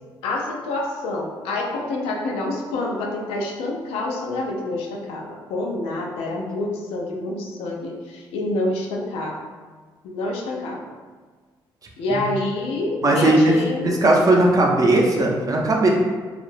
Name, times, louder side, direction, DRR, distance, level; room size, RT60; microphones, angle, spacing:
voice 1, 0.2-9.4 10.0-10.9 12.0-14.0, left 2 dB, 85° left, -1 dB, 0.4 m, -27 dB
voice 2, 13.0-13.5 13.8-15.9, right 2 dB, 40° right, -1 dB, 0.5 m, -17 dB
2.3 x 2.0 x 3.1 m, 1.5 s
supercardioid pair, 60°, 10 cm